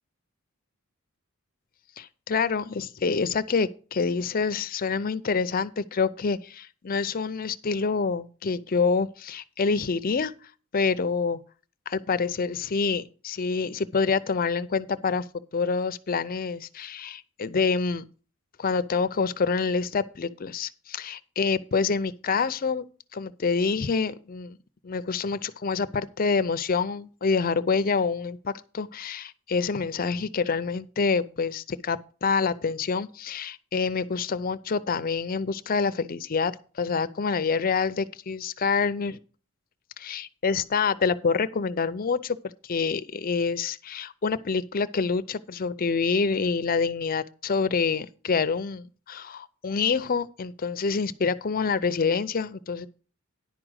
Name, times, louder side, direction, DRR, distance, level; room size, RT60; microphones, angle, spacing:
voice 1, 2.0-10.3 10.7-11.4 11.9-15.2 15.5-18.0 18.6-22.8 23.1-24.6 24.8-39.2 40.0-42.4 42.6-52.9, left 5 dB, 45° left, 0.5 m, -27 dB
10.5 x 4.9 x 6.3 m
head